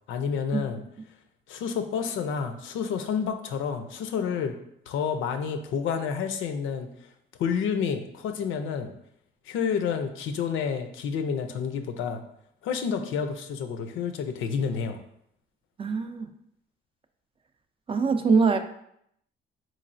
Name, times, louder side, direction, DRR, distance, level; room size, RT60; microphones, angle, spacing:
voice 1, 0.1-0.8 1.5-4.6 4.9-6.9 7.4-8.9 9.5-12.2 12.6-15.0, left 6 dB, 85° left, 7 dB, 0.5 m, -29 dB
voice 2, 15.8-16.3 17.9-18.6, right 5 dB, 30° right, 7 dB, 0.3 m, -23 dB
4.0 x 3.1 x 2.5 m, 0.73 s
cardioid pair, 90°, 20 cm